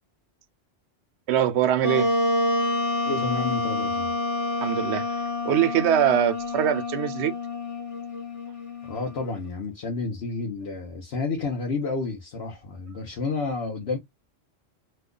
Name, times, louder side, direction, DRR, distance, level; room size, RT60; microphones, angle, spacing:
voice 1, 1.3-2.1 4.6-5.1 5.4-7.3, right 10 dB, 75° right, 0.9 m, -23 dB
Wind instrument woodwind instrument, 1.8-9.2, left 2 dB, 30° left, 0.8 m, -28 dB
voice 2, 3.0-4.1 8.8-14.0, left 3 dB, 65° left, 1.1 m, -30 dB
3.0 x 2.3 x 3.6 m
omnidirectional pair, 1.1 m